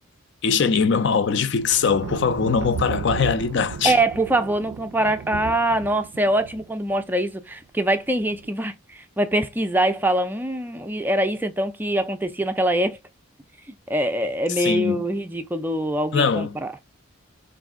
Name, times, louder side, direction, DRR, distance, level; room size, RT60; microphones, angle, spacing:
voice 1, 0.4-3.9 14.6-15.0 16.1-16.6, left 5 dB, 55° left, 0.5 m, -21 dB
sound 1, 1.6-7.0 8.2-8.5, right 6 dB, 75° right, 0.4 m, -35 dB
voice 2, 3.8-13.0 13.9-16.7, right 1 dB, 10° right, 0.4 m, -23 dB
4.1 x 2.6 x 3.6 m
head